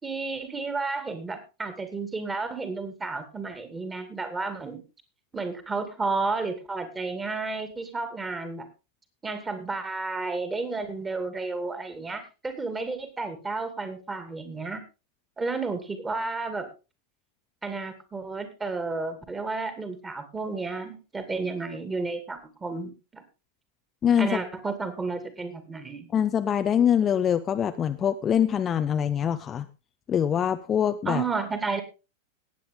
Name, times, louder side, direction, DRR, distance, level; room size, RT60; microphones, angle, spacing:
voice 1, 0.0-4.8 5.3-8.7 9.2-14.8 15.4-16.7 17.6-23.2 24.2-26.1 31.1-31.8, right 3 dB, 15° right, 9 dB, 2.4 m, -32 dB
voice 2, 24.0-24.4 26.1-29.7 30.1-31.2, left 9 dB, 25° left, 9 dB, 0.6 m, -24 dB
18.0 x 8.6 x 3.7 m, 0.30 s
figure-of-eight pair, 90°, 0 cm